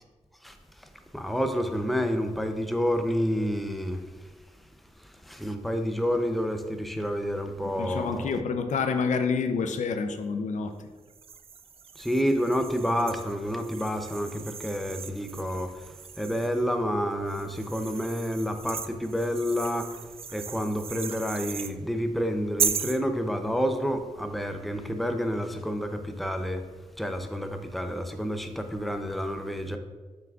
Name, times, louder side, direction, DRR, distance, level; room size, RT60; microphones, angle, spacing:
voice 1, 1.1-4.0 5.3-8.4 12.0-15.7 16.2-19.9 20.3-26.6 27.0-29.8, equal, ahead, 6 dB, 0.6 m, -29 dB
voice 2, 7.6-10.9, left 5 dB, 90° left, 7 dB, 0.5 m, -28 dB
sound 1, 11.1-16.7 17.3-21.7 22.6-23.0, right 6 dB, 50° right, 0.4 m, -36 dB
7.2 x 5.9 x 2.4 m, 1.3 s
cardioid pair, 75°, 12 cm